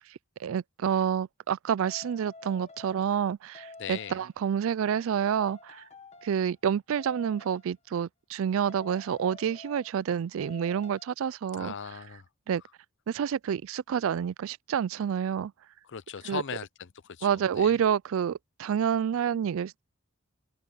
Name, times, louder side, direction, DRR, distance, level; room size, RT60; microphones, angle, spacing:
voice 1, 0.4-5.8 6.2-11.7 12.5-12.6 13.1-15.5 16.3-16.4 17.2-19.8, right 8 dB, 65° right, 0.3 m, -28 dB
sound 1, 1.8-3.2 3.5-4.4 5.3-6.5 7.0-7.7 8.7-10.1 10.4-11.1, left 3 dB, 30° left, 1.4 m, -49 dB
voice 2, 3.8-4.2 11.5-12.3 15.8-17.8, left 7 dB, 60° left, 0.6 m, -39 dB
head